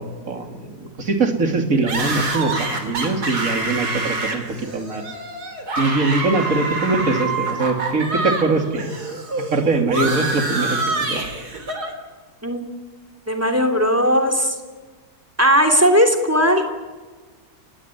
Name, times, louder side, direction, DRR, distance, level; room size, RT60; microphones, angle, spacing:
voice 1, 0.0-5.0 5.8-8.9 9.5-11.2, right 3 dB, 55° right, 5 dB, 3.1 m, -22 dB
sound 1, 1.9-8.5 8.7-11.9, right 3 dB, 75° right, 3.9 m, -26 dB
voice 2, 13.3-14.6 15.4-16.7, equal, 10° right, 6 dB, 2.9 m, -17 dB
30.0 x 17.5 x 9.8 m, 1.4 s
omnidirectional pair, 1.7 m